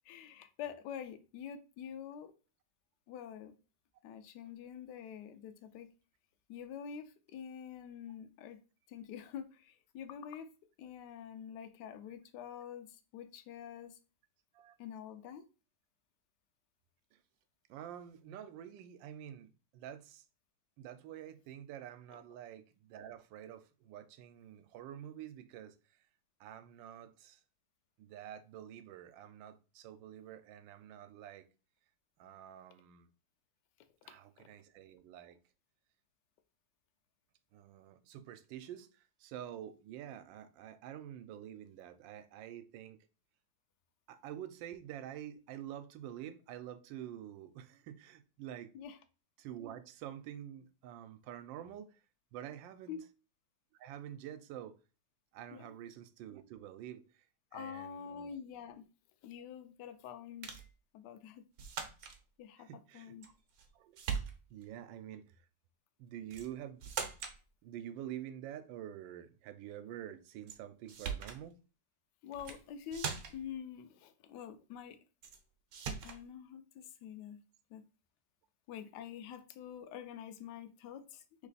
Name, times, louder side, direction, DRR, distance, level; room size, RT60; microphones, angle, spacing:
voice 1, 0.0-2.3 3.1-3.5 4.0-5.9 6.5-8.6 8.9-10.5 10.8-14.0 14.8-15.4 22.1-22.2 34.4-34.5 48.7-49.0 52.9-53.0 55.5-55.7 57.5-58.9 59.2-60.5 60.9-61.4 62.4-62.7 62.9-63.3 72.2-75.0 76.0-77.4 77.7-77.8 78.7-81.5, left 8 dB, 70° left, 1.2 m, -46 dB
voice 2, 17.7-20.2 20.8-25.8 26.4-27.4 28.0-31.5 32.2-33.1 34.0-35.4 37.5-43.0 44.1-48.7 49.4-52.0 52.3-53.0 53.8-54.8 55.3-57.2 57.5-58.3 62.6-63.3 63.7-64.0 64.5-65.4 66.0-66.8 67.6-71.6, right 11 dB, 80° right, 1.3 m, -48 dB
sound 1, 60.4-60.7 61.6-62.2 63.2-63.7 64.0-64.7 66.3-66.5 66.8-67.4 70.5-70.6 70.9-71.4 72.3-72.6 72.9-73.5 75.2-75.4 75.7-76.2, right 6 dB, 60° right, 1.0 m, -40 dB
3.3 x 3.1 x 4.0 m
omnidirectional pair, 2.0 m